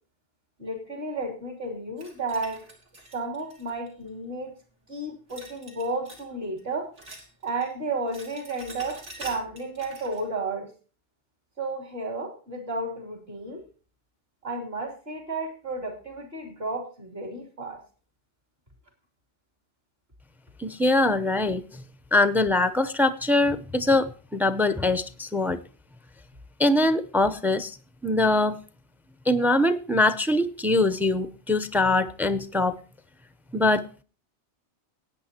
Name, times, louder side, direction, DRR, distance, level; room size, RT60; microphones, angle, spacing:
voice 1, 0.6-2.6 3.1-4.5 4.9-6.9 7.4-10.7 11.6-13.6 14.4-17.8 21.0-21.1, right 2 dB, 55° right, 2 dB, 3.4 m, -32 dB
sound 1, 2.0-4.1 5.3-6.3 6.6-7.7 8.0-10.3, right 1 dB, 75° right, 3.1 m, -45 dB
voice 2, 20.6-21.6 22.1-25.6 26.6-27.7 28.0-28.6 29.3-32.8 33.5-34.0, left 2 dB, ahead, 13 dB, 0.4 m, -23 dB
18.5 x 8.8 x 2.8 m, 0.37 s
omnidirectional pair, 1.2 m